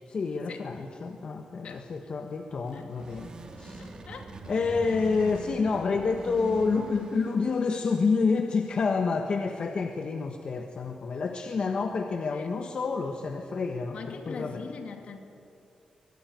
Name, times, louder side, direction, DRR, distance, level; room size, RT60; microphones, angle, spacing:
voice 1, 0.1-3.3 3.6-3.9 4.5-14.6, left 4 dB, 50° left, 4 dB, 1.5 m, -28 dB
sound 1, 2.5-7.8, right 2 dB, 40° right, 2.6 m, -42 dB
voice 2, 3.8-4.8 12.3-12.5 13.9-15.2, left 5 dB, 65° left, 4 dB, 2.7 m, -42 dB
24.0 x 21.0 x 9.4 m, 2.5 s
wide cardioid pair, 125°, 2 cm